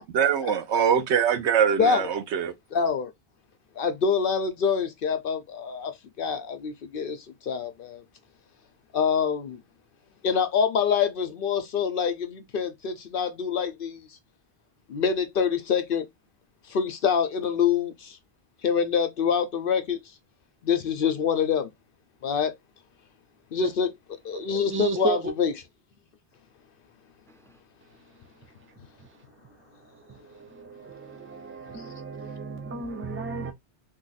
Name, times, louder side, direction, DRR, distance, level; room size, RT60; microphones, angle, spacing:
voice 1, 0.0-2.5, right 8 dB, 80° right, 0.9 m, -23 dB
voice 2, 2.7-3.1 3.8-7.2 7.4-8.0 8.9-9.6 10.2-14.0 14.9-16.1 16.7-18.2 18.6-20.0 20.6-21.7 22.2-22.5 23.5-23.9 24.2-25.5, left 6 dB, 60° left, 0.7 m, -25 dB
voice 3, 24.3-25.3 30.3-33.5, right 3 dB, 20° right, 0.3 m, -33 dB
2.7 x 2.4 x 3.9 m
omnidirectional pair, 1.2 m